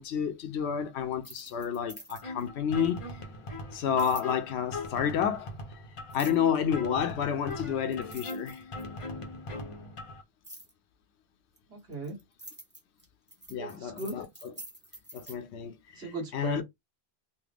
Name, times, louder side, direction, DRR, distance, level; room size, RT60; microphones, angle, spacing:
voice 1, 0.0-3.2 3.7-5.5 6.1-8.6 13.5-14.5 15.1-16.6, left 8 dB, 75° left, 0.8 m, -30 dB
sound 1, 1.1-2.5 4.0-4.3 6.1-6.6 7.5-7.6 7.9-9.0 10.4-10.7 11.6-15.4, right 1 dB, 10° right, 1.0 m, -47 dB
sound 2, 2.2-10.2, left 2 dB, 40° left, 0.5 m, -40 dB
voice 2, 11.7-12.2 13.6-14.1 16.0-16.6, right 2 dB, 65° right, 1.5 m, -37 dB
3.3 x 2.1 x 3.4 m
omnidirectional pair, 1.1 m